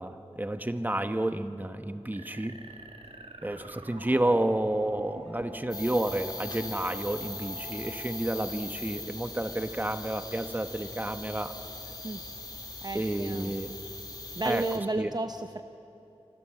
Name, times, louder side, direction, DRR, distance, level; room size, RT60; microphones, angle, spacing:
voice 1, 0.0-2.6 3.4-11.5 12.9-13.7 14.4-15.1, right 1 dB, 15° right, 8 dB, 1.1 m, -30 dB
sound 1, 2.1-5.6, right 2 dB, 65° right, 2.5 m, -47 dB
sound 2, 2.6-13.7, equal, 85° right, 2.8 m, -51 dB
sound 3, 5.7-14.8, left 2 dB, 40° left, 3.4 m, -41 dB
voice 2, 12.8-13.5 14.4-15.6, right 2 dB, 40° right, 7 dB, 0.7 m, -32 dB
27.5 x 24.5 x 7.8 m, 3.0 s
wide cardioid pair, 80°, 11 cm